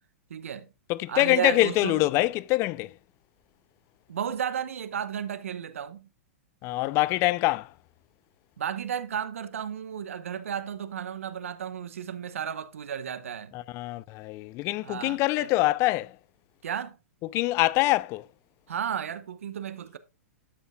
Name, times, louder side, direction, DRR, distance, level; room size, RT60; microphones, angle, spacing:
voice 1, 0.3-0.7 1.1-2.0 4.1-6.1 8.6-13.5 14.8-15.5 16.6-17.0 18.7-20.0, right 8 dB, 75° right, 1.0 m, -33 dB
voice 2, 0.9-2.9 6.6-7.7 13.5-16.1 17.2-18.2, left 19 dB, 35° left, 0.5 m, -25 dB
11.5 x 8.1 x 2.3 m
hypercardioid pair, 110°, 7 cm